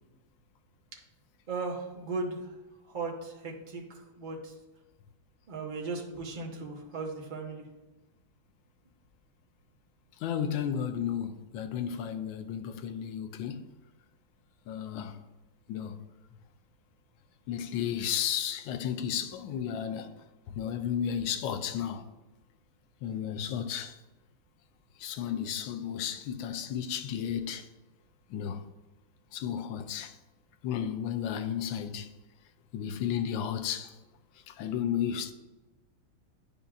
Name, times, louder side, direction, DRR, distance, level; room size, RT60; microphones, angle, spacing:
voice 1, 1.5-2.6 2.9-4.5 5.5-7.6, right 3 dB, 55° right, 0.5 m, -37 dB
voice 2, 10.2-13.7 14.7-15.2 15.7-16.1 17.5-20.1 20.5-22.0 23.0-24.0 25.0-27.7 28.3-28.6 29.3-30.1 30.6-32.1 32.7-33.9 34.5-35.3, left 9 dB, 75° left, 1.2 m, -33 dB
9.9 x 5.3 x 2.4 m
omnidirectional pair, 2.4 m